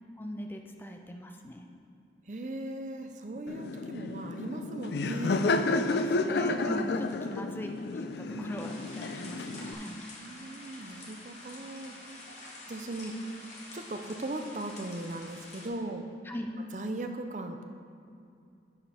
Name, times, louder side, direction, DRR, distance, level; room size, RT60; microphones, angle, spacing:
voice 1, 0.2-1.6 5.7-10.0 16.3-16.5, equal, 10° left, 3 dB, 0.5 m, -40 dB
voice 2, 2.3-5.5 6.4-6.6 8.3-8.5 10.2-12.3 12.7-13.4 13.7-16.1 16.7-17.6, right 1 dB, 45° right, 6 dB, 0.6 m, -38 dB
Laughter, 3.5-9.7, left 3 dB, 65° left, 0.4 m, -31 dB
sound 1, 8.6-15.7, left 2 dB, 40° left, 1.3 m, -48 dB
10.5 x 5.0 x 4.3 m, 2.5 s
head